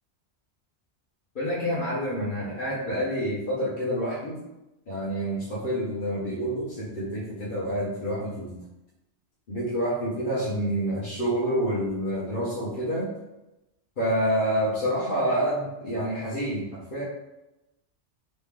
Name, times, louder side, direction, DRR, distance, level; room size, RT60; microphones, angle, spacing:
voice 1, 1.3-4.4 4.9-8.6 9.5-13.1 14.0-17.0, equal, 50° left, -7 dB, 1.0 m, -28 dB
3.2 x 2.8 x 3.5 m, 0.95 s
omnidirectional pair, 1.2 m